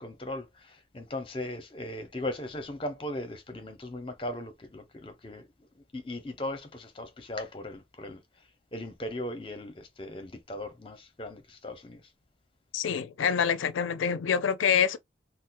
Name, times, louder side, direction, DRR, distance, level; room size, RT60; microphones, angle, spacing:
voice 1, 0.0-5.5 5.8-8.2 8.7-12.0, left 1 dB, 25° left, 0.6 m, -38 dB
voice 2, 12.7-15.0, left 7 dB, 85° left, 0.4 m, -26 dB
4.1 x 2.0 x 2.4 m
head